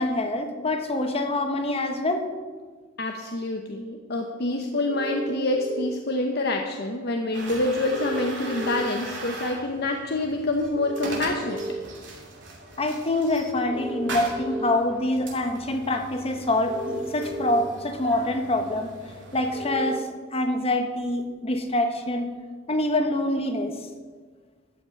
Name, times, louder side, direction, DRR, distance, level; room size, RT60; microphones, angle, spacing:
voice 1, 0.0-2.2 12.8-18.9 19.3-20.0 20.3-22.3 22.7-23.7, left 1 dB, 30° left, 6 dB, 1.2 m, -25 dB
voice 2, 3.0-11.7, left 2 dB, 60° left, 3 dB, 0.9 m, -27 dB
sound 1, 4.9-5.9 7.8-8.8 10.7-11.7 13.7-14.7 16.6-17.6 19.5-19.9, equal, 50° right, 1.7 m, -34 dB
sound 2, 7.3-19.7, right 2 dB, 75° right, 2.7 m, -40 dB
13.0 x 5.9 x 8.4 m, 1.5 s
head